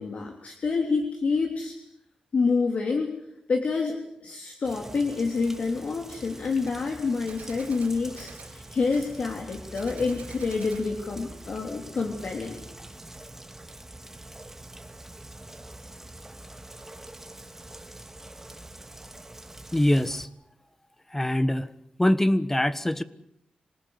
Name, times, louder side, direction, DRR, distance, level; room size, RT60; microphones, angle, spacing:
voice 1, 0.0-1.8 2.3-3.2 3.5-12.6, left 4 dB, 65° left, 2 dB, 3.2 m, -28 dB
Rain, 4.6-20.2, right 1 dB, 15° right, 2.1 m, -45 dB
Gunshot gunfire, 6.7-6.8 7.3-8.6 8.9-9.1 9.8-10.9, right 5 dB, 80° right, 5.5 m, -47 dB
voice 2, 19.7-20.3 21.1-21.7 22.0-23.0, left 1 dB, 15° left, 13 dB, 1.3 m, -23 dB
26.5 x 19.0 x 8.2 m, 0.79 s
wide cardioid pair, 95°, 3 cm